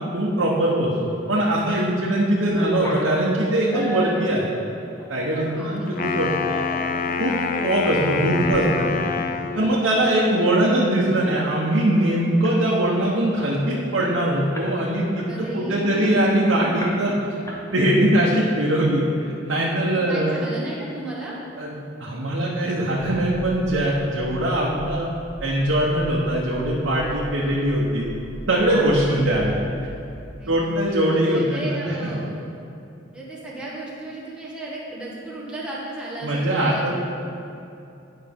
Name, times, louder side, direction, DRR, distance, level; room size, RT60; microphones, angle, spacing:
voice 1, 0.1-4.5 5.1-6.3 7.2-7.3 7.6-9.1 9.5-17.1 17.7-20.4 21.6-21.7 22.0-25.1 25.4-28.1 28.5-29.6 30.5-31.8 36.2-36.9, right 1 dB, 80° right, -5 dB, 1.0 m, -21 dB
sound 1, 1.3-1.9 2.2-5.8 6.3-7.3 7.7-7.8 8.2-8.6 8.9-9.0 9.2-11.6 11.9-12.1 12.4-12.9 13.3-13.4 13.7-14.8 15.2-16.3 16.8-17.2 17.5-18.1, equal, 15° left, 0.9 m, -36 dB
voice 2, 5.6-5.9 15.2-16.1 20.1-21.4 24.1-24.2 28.9-29.4 30.4-30.6 31.1-32.4 33.1-36.9, right 1 dB, 5° right, -7 dB, 1.4 m, -34 dB
Wind instrument woodwind instrument, 5.9-9.8, left 5 dB, 45° left, 0.3 m, -26 dB
sound 2, 22.9-30.2, equal, 65° left, 1.7 m, -39 dB
9.9 x 5.6 x 3.5 m, 2.7 s
head